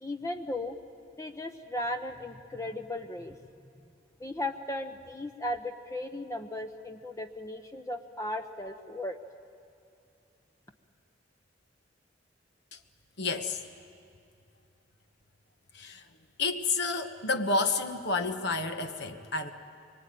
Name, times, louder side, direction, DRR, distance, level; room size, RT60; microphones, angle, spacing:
voice 1, 0.0-0.8 1.2-3.4 4.2-9.2, left 1 dB, 15° left, 5 dB, 0.8 m, -36 dB
voice 2, 13.2-13.6 15.7-16.0 16.4-19.5, left 3 dB, 65° left, 6 dB, 1.5 m, -30 dB
24.0 x 24.0 x 9.3 m, 2.5 s
head